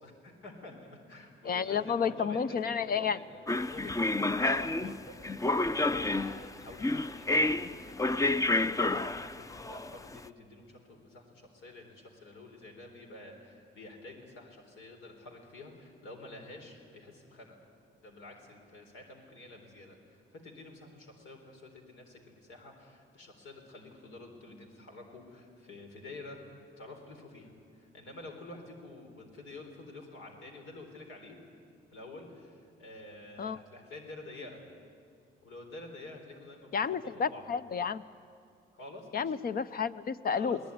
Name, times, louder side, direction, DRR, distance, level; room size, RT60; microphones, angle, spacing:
voice 1, 0.0-17.6 18.0-26.4 26.8-31.4 31.9-34.6 35.4-37.5 38.7-39.4 40.4-40.6, left 2 dB, 80° left, 2 dB, 4.0 m, -49 dB
voice 2, 1.4-3.2 33.4-33.6 36.7-38.0 39.1-40.6, left 6 dB, 50° left, 13 dB, 0.8 m, -31 dB
sound 1, 3.5-10.2, left 2 dB, 15° left, 0.6 m, -29 dB
22.0 x 19.0 x 9.6 m, 2.4 s
cardioid pair, 90°, 20 cm